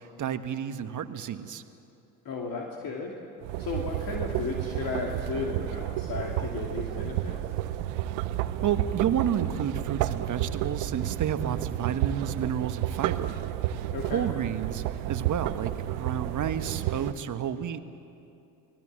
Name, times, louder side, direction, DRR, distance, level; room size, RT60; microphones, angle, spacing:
voice 1, 0.0-1.6 8.6-13.4 14.1-17.8, right 9 dB, 40° right, 10 dB, 1.5 m, -31 dB
voice 2, 2.2-3.1 3.6-7.4 13.9-14.2, left 4 dB, 50° left, -1 dB, 2.9 m, -34 dB
sound 1, 3.4-17.1, right 13 dB, 65° right, 1.1 m, -31 dB
29.5 x 20.0 x 7.7 m, 2.7 s
hypercardioid pair, 65°, 45 cm